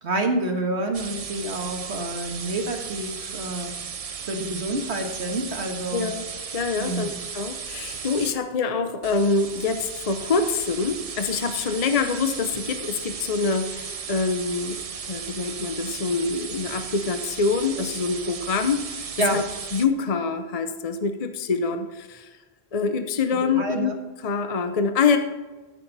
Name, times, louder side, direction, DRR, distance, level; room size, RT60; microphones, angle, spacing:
voice 1, 0.0-3.7 4.2-6.1 6.8-7.1 19.2-19.4 23.3-23.9, right 2 dB, 80° right, 3 dB, 1.7 m, -28 dB
sound 1, 0.9-8.4 9.0-19.9, right 6 dB, 40° right, 0.6 m, -35 dB
voice 2, 5.9-6.2 6.5-19.4 19.7-22.4 22.7-25.2, left 4 dB, 40° left, 7 dB, 0.7 m, -25 dB
13.5 x 6.5 x 4.0 m, 1.2 s
omnidirectional pair, 1.1 m